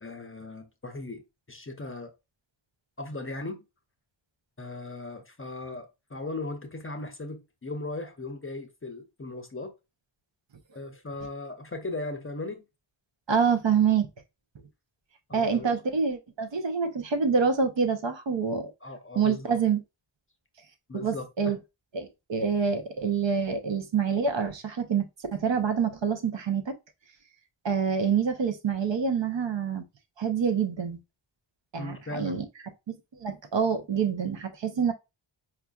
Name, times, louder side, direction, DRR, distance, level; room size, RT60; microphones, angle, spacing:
voice 1, 0.0-1.2 1.5-2.1 3.0-3.7 4.6-9.7 10.7-12.6 15.3-15.7 18.8-19.6 20.9-21.5 31.8-32.4, left 2 dB, 25° left, 0.5 m, -37 dB
voice 2, 13.3-14.1 15.3-18.7 19.2-19.8 20.9-21.6 21.9-26.8 27.6-29.9 30.2-31.0 31.7-32.4 32.9-34.9, right 6 dB, 65° right, 0.7 m, -26 dB
4.4 x 2.5 x 2.3 m
wide cardioid pair, 80°, 49 cm